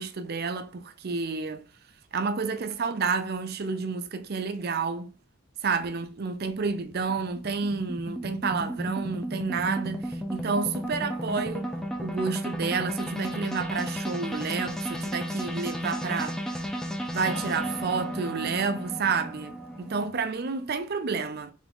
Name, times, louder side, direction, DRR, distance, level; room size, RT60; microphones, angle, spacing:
voice 1, 0.0-1.6 2.1-5.1 5.6-11.7 12.0-16.6 17.1-21.5, right 5 dB, 45° right, 0.5 m, -30 dB
sound 1, 5.8-20.1, equal, 5° left, 0.6 m, -34 dB
3.7 x 3.5 x 3.6 m
head